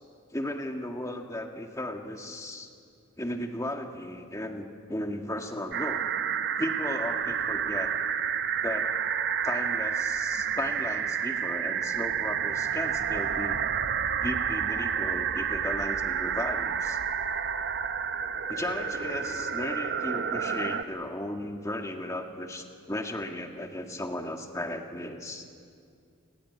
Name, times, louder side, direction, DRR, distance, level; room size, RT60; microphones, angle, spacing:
voice 1, 0.3-2.7 3.2-6.0 6.6-7.9 8.6-8.9 9.4-13.6 14.2-17.0 18.5-25.4, left 1 dB, 15° left, 3 dB, 2.0 m, -35 dB
sound 1, 5.7-20.8, right 7 dB, 50° right, 0.8 m, -30 dB
29.0 x 20.5 x 9.7 m, 2.3 s
head